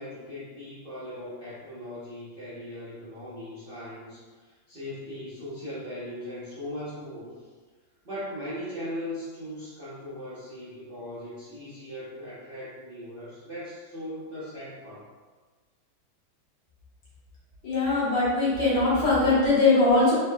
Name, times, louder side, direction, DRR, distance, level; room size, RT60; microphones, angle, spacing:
voice 1, 0.0-7.5 8.0-15.1, left 1 dB, 45° right, -12 dB, 0.7 m, -39 dB
voice 2, 17.6-20.1, left 3 dB, 60° left, -8 dB, 1.7 m, -21 dB
4.1 x 3.4 x 2.2 m, 1.4 s
omnidirectional pair, 2.2 m